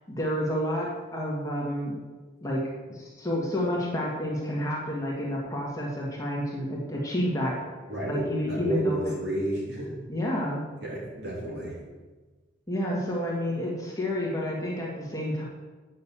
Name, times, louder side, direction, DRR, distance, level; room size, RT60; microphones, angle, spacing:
voice 1, 0.1-2.0 2.4-2.6 2.9-7.6 8.1-9.1 10.1-10.6 12.7-15.4, equal, 15° left, -4 dB, 1.9 m, -29 dB
voice 2, 7.9-9.9 10.8-11.8, right 1 dB, 55° right, -5 dB, 3.3 m, -31 dB
8.5 x 6.5 x 7.4 m, 1.3 s
head